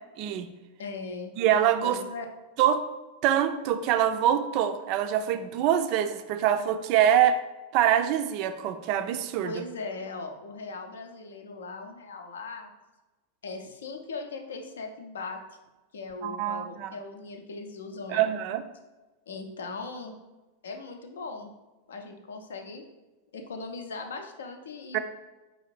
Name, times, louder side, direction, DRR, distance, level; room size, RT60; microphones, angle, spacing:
voice 1, 0.2-0.5 1.4-2.0 2.6-2.8 3.2-7.4 7.7-9.6 16.2-16.9 18.1-18.6 24.9-25.0, right 10 dB, 45° right, 9 dB, 0.3 m, -24 dB
voice 2, 0.8-1.3 1.8-2.3 9.4-12.7 13.4-15.4 15.9-18.2 19.3-20.2 20.6-21.5 21.9-22.8 23.3-25.0, left 3 dB, 65° left, 5 dB, 0.5 m, -39 dB
4.8 x 2.5 x 3.2 m, 1.1 s
figure-of-eight pair, 90°, 0 cm